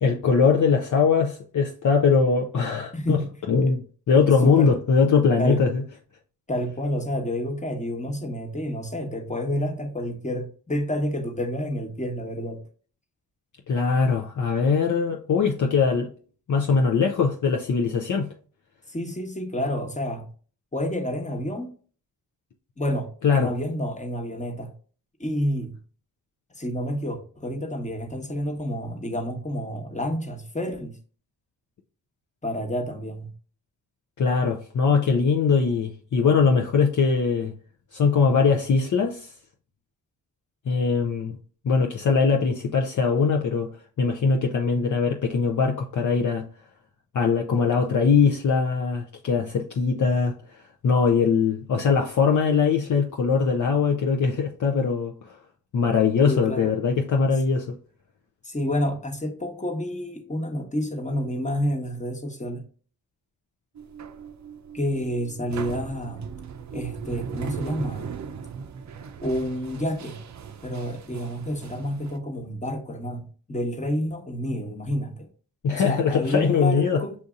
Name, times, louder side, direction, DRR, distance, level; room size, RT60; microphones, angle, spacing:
voice 1, 0.0-3.2 3.5-5.8 13.7-16.1 16.5-18.3 23.2-23.5 34.2-37.5 37.9-39.3 40.7-41.4 41.6-43.7 44.0-46.5 47.1-50.4 50.8-55.3 55.7-57.8 75.6-77.0, left 5 dB, 50° left, 0.6 m, -21 dB
voice 2, 2.9-3.3 4.4-4.8 5.4-5.6 6.5-12.6 18.9-20.3 20.7-21.7 22.8-24.7 25.2-25.8 26.5-31.0 32.4-33.3 56.2-56.7 58.4-62.7 64.7-66.3 66.7-68.1 69.2-70.2 70.6-75.3 75.7-77.2, equal, 20° left, 1.2 m, -29 dB
sound 1, 63.7-72.2, right 6 dB, 45° right, 0.6 m, -38 dB
7.1 x 2.6 x 2.5 m
supercardioid pair, 45°, 40 cm